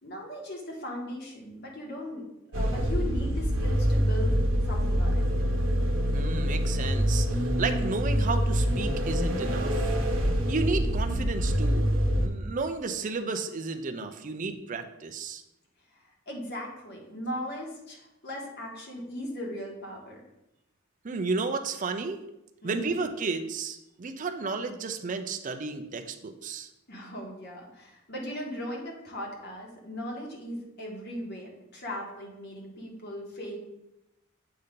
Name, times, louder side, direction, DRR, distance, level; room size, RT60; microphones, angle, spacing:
voice 1, 0.0-2.2 2.5-5.2 16.3-20.2 22.6-23.0 26.9-33.6, equal, 50° left, -1 dB, 1.5 m, -38 dB
sound 1, 2.5-12.3, equal, 70° right, 1.1 m, -26 dB
voice 2, 6.1-9.9 10.5-15.4 21.0-22.2 22.6-26.7, right 4 dB, 40° right, 7 dB, 0.5 m, -33 dB
7.8 x 2.8 x 5.1 m, 0.88 s
head